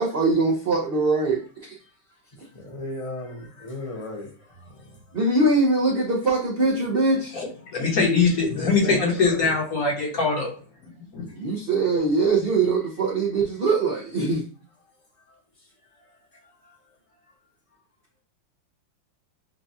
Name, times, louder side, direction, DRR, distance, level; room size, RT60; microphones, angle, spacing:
voice 1, 0.0-1.8 5.1-7.3 11.3-14.4, right 3 dB, 75° right, -2 dB, 0.5 m, -22 dB
voice 2, 2.5-4.7 8.5-9.5 16.6-16.8, left 1 dB, 30° left, 0 dB, 0.7 m, -35 dB
voice 3, 7.3-10.5 11.1-11.3 11.9-12.0, left 4 dB, 55° left, -1 dB, 1.4 m, -22 dB
5.9 x 2.3 x 2.7 m, 0.40 s
omnidirectional pair, 2.0 m